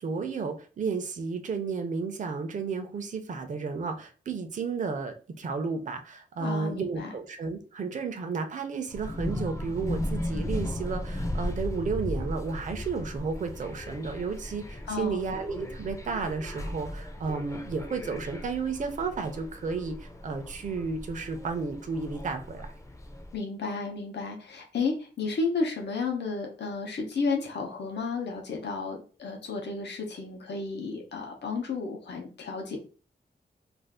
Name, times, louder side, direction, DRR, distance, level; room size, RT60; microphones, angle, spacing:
voice 1, 0.0-22.7, right 4 dB, 45° right, 6 dB, 0.5 m, -32 dB
voice 2, 6.4-7.1 14.9-15.2 23.3-32.8, left 4 dB, 85° left, 1 dB, 0.7 m, -32 dB
sound 1, 8.9-23.4, left 1 dB, 20° left, 0.4 m, -36 dB
2.5 x 2.3 x 3.5 m, 0.37 s
wide cardioid pair, 170°, 17 cm